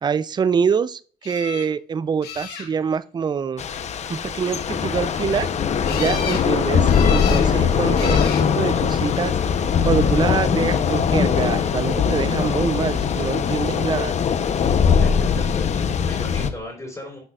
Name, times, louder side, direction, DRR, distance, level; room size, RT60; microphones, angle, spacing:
voice 1, 0.0-3.6 4.1-5.5 5.9-9.3 9.8-14.1, right 6 dB, 25° right, 0.4 m, -25 dB
sound 1, 1.2-1.7 2.2-3.0 5.9-6.5 6.9-7.5 8.0-8.5 9.4-9.9 16.1-16.2 16.5-16.6, left 7 dB, 75° left, 2.0 m, -33 dB
Thunder / Rain, 3.6-16.5, left 7 dB, 40° left, 0.8 m, -21 dB
voice 2, 6.4-6.8 15.0-17.2, left 1 dB, 20° left, 3.9 m, -38 dB
12.0 x 6.0 x 2.4 m
cardioid pair, 110°, 17 cm